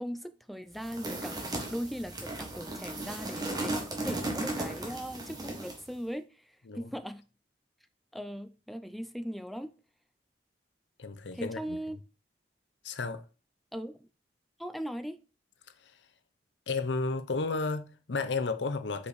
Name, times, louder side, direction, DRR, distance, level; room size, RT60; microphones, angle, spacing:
voice 1, 0.0-7.3 8.1-9.7 11.3-12.0 13.7-14.1 14.6-15.2, equal, ahead, 0.4 m, -39 dB
sound 1, 0.8-5.9, right 2 dB, 20° right, 1.4 m, -36 dB
voice 2, 11.0-11.8 12.8-13.2 16.7-19.1, left 3 dB, 80° left, 0.7 m, -32 dB
5.5 x 4.9 x 4.1 m
head